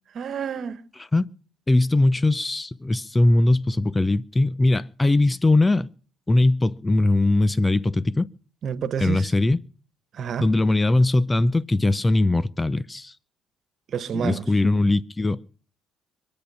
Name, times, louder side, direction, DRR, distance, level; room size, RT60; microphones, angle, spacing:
voice 1, 0.1-0.8 8.6-9.3 10.1-10.5 13.9-14.5, right 7 dB, 55° right, 1.5 m, -29 dB
voice 2, 1.7-5.9 6.3-8.3 9.0-9.6 10.4-13.1 14.1-15.5, left 2 dB, 15° left, 0.6 m, -20 dB
25.5 x 8.7 x 5.7 m
supercardioid pair, 85°, 0 cm